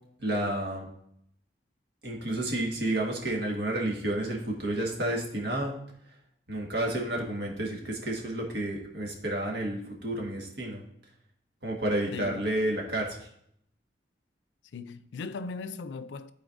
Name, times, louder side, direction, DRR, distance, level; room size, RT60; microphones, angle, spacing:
voice 1, 0.2-0.9 2.0-5.7 6.5-10.8 11.6-13.3, right 1 dB, 75° right, 1.6 m, -30 dB
voice 2, 12.1-12.4 14.7-16.3, left 4 dB, 85° left, 0.4 m, -38 dB
12.5 x 4.3 x 2.6 m
head